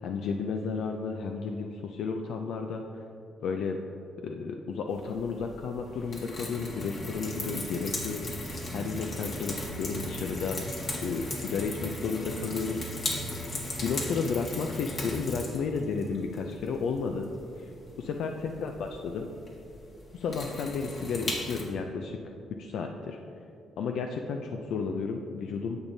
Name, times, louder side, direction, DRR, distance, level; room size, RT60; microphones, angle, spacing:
voice 1, 0.0-2.8 3.4-3.8 4.2-10.6 11.0-12.8 13.8-17.3 18.0-19.3 20.1-22.2 22.5-23.2 23.8-25.8, left 5 dB, 75° left, 4 dB, 0.4 m, -32 dB
sound 1, 5.1-21.6, left 1 dB, 45° left, 1.6 m, -37 dB
10.0 x 7.2 x 2.7 m, 2.6 s
cardioid pair, 90°, 0 cm